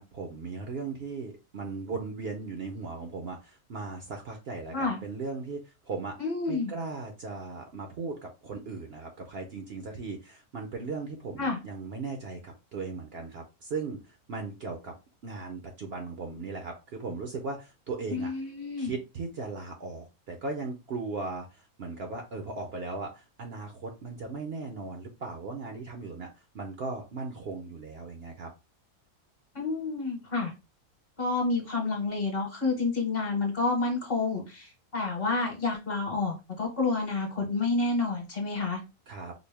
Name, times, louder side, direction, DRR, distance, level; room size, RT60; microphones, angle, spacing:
voice 1, 0.0-6.2 6.5-14.9 15.2-18.3 18.8-28.5 39.1-39.3, right 4 dB, 60° right, 3 dB, 0.7 m, -37 dB
voice 2, 6.2-6.7 11.4-11.6 18.1-18.9 29.5-30.5 31.2-38.8, left 3 dB, 45° left, 2 dB, 1.1 m, -29 dB
4.0 x 2.1 x 3.3 m, 0.28 s
omnidirectional pair, 1.4 m